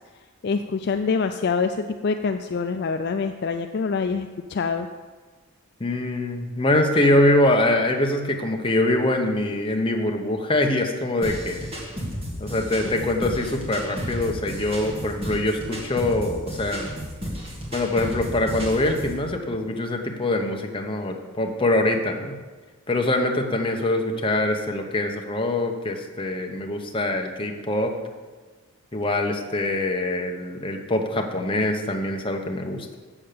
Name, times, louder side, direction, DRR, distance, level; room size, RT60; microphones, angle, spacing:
voice 1, 0.4-4.9 12.8-12.9, left 5 dB, 50° left, 7 dB, 0.3 m, -25 dB
voice 2, 5.8-11.7 12.4-16.9 17.7-22.4 22.9-27.9 28.9-33.0, left 1 dB, 25° left, 3 dB, 0.9 m, -24 dB
sound 1, 11.2-19.2, equal, 25° right, 2.1 m, -33 dB
7.7 x 7.3 x 6.7 m, 1.4 s
head